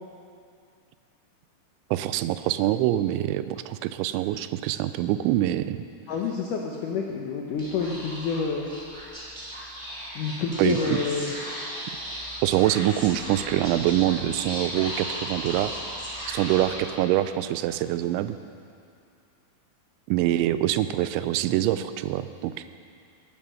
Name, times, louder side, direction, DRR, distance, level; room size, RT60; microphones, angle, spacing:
voice 1, 1.9-5.8 10.6-11.0 12.4-15.7 16.3-18.4 20.1-22.5, right 13 dB, 85° right, 12 dB, 3.0 m, -25 dB
voice 2, 6.1-8.7 10.1-11.3, left 5 dB, 90° left, 0 dB, 1.8 m, -28 dB
Speech / Whispering, 7.5-17.3, equal, 15° right, 3.2 m, -36 dB
19.5 x 11.0 x 6.4 m, 2.4 s
omnidirectional pair, 5.3 m